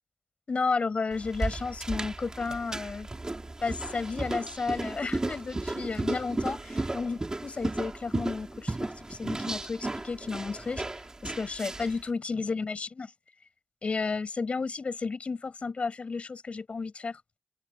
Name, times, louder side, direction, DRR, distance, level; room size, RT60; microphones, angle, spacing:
voice 1, 0.5-3.1 3.6-10.8 11.2-13.1 13.8-17.2, left 4 dB, 55° left, 7.9 m, -32 dB
sound 1, 1.1-12.0, right 2 dB, 30° right, 3.1 m, -34 dB
open air
wide cardioid pair, 85°, 2 cm